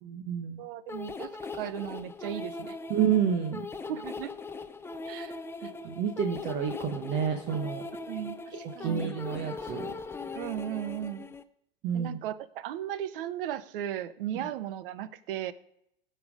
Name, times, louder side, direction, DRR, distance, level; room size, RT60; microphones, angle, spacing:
voice 1, 0.0-0.6 2.9-3.7 5.8-7.8 8.8-9.9 11.8-12.2, right 8 dB, 40° right, 5 dB, 1.1 m, -29 dB
voice 2, 0.6-2.8 3.9-4.3 5.0-5.4 5.6-5.7 8.0-9.2 10.3-11.3 11.9-15.5, right 11 dB, 65° right, 16 dB, 0.9 m, -36 dB
sound 1, 0.9-11.4, left 3 dB, 10° left, 0.5 m, -40 dB
16.5 x 5.5 x 5.0 m, 0.76 s
hypercardioid pair, 105°, 30 cm